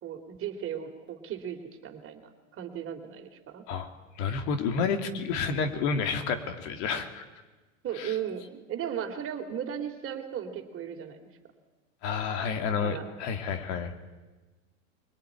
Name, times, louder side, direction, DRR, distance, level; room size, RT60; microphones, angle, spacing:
voice 1, 0.0-3.6 7.8-11.2 12.8-13.1, right 9 dB, 35° right, 6 dB, 3.2 m, -36 dB
voice 2, 4.1-7.2 7.9-8.2 12.0-13.9, left 5 dB, 60° left, 7 dB, 2.9 m, -30 dB
23.5 x 18.5 x 10.0 m, 1.2 s
hypercardioid pair, 115°, 39 cm